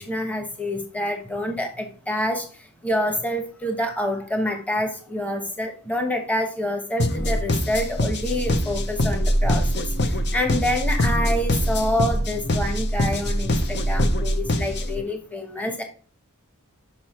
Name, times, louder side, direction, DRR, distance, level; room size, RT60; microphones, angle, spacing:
voice 1, 0.0-15.8, left 1 dB, 5° left, 4 dB, 1.1 m, -27 dB
sound 1, 7.0-15.0, left 1 dB, 50° left, 0.8 m, -25 dB
sound 2, 8.3-14.4, right 1 dB, 25° right, 0.5 m, -26 dB
6.2 x 5.6 x 4.3 m, 0.40 s
head